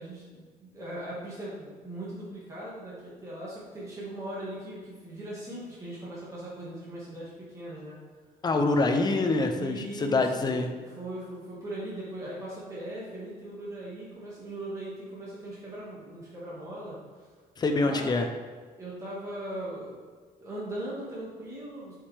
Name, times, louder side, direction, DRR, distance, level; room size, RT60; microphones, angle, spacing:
voice 1, 0.0-8.0 9.5-17.0 17.8-18.2 18.8-20.0 20.4-21.9, right 1 dB, 20° right, -7 dB, 2.0 m, -39 dB
voice 2, 8.4-10.7 17.6-18.3, left 3 dB, 25° left, 5 dB, 0.7 m, -25 dB
8.2 x 5.0 x 3.5 m, 1.5 s
cardioid pair, 140°, 15 cm